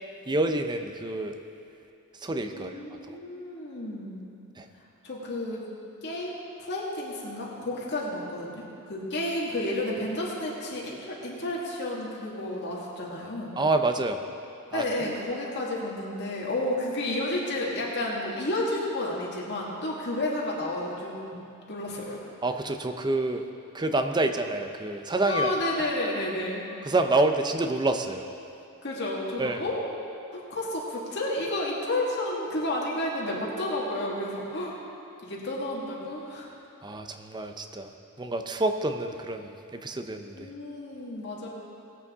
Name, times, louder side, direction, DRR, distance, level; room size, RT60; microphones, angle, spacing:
voice 1, 0.3-1.4 2.2-2.7 3.1-3.2 4.6-4.7 13.6-14.2 14.7-15.1 22.4-23.4 23.7-25.5 26.9-28.3 29.4-29.6 36.8-37.9 38.2-40.5, right 2 dB, 20° right, 6 dB, 0.6 m, -27 dB
voice 2, 2.5-4.3 5.0-5.7 6.0-13.6 14.7-21.4 21.7-22.2 25.3-26.6 28.8-29.8 30.3-34.8 35.2-36.5 40.3-41.5, left 1 dB, 55° left, -4 dB, 1.9 m, -31 dB
19.0 x 8.2 x 3.6 m, 2.6 s
head